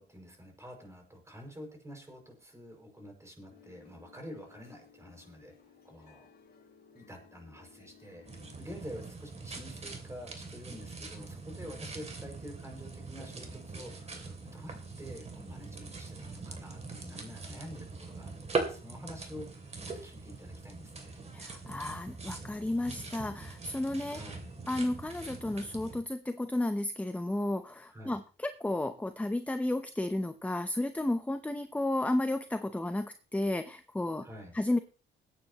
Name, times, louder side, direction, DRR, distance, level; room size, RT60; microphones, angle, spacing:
voice 1, 0.0-5.5 5.8-6.3 6.9-8.3 8.6-21.2 24.1-24.5 27.9-28.2 34.2-34.6, equal, 15° right, 3 dB, 5.7 m, -48 dB
sound 1, 3.5-8.6, left 6 dB, 50° left, 3.2 m, -59 dB
sound 2, 8.3-26.0, right 3 dB, 35° right, 2.9 m, -42 dB
voice 2, 21.3-24.2 24.7-34.3 34.5-34.8, left 1 dB, 5° left, 10 dB, 0.8 m, -32 dB
21.5 x 9.1 x 3.0 m, 0.36 s
cardioid pair, 90°, 20 cm